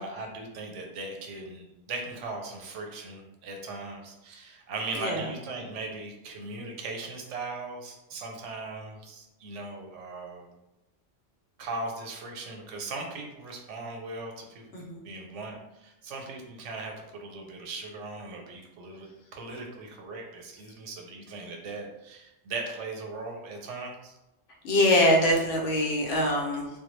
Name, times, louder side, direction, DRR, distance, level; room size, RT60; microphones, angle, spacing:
voice 1, 0.0-10.5 11.6-24.2, right 3 dB, 90° right, 2 dB, 0.9 m, -39 dB
voice 2, 24.6-26.7, left 1 dB, 85° left, -1 dB, 1.0 m, -23 dB
2.2 x 2.1 x 3.0 m, 0.94 s
omnidirectional pair, 1.2 m